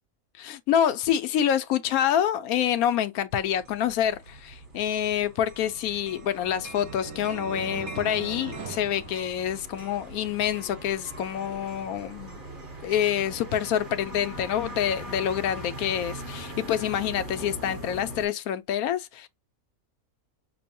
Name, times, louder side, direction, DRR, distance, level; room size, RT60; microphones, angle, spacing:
voice 1, 0.4-12.4 12.8-19.3, left 10 dB, 85° left, 1.1 m, -27 dB
sound 1, 3.3-18.3, right 1 dB, 40° right, 1.2 m, -42 dB
sound 2, 5.4-10.0, right 4 dB, 75° right, 1.4 m, -40 dB
6.0 x 2.1 x 2.7 m
omnidirectional pair, 1.5 m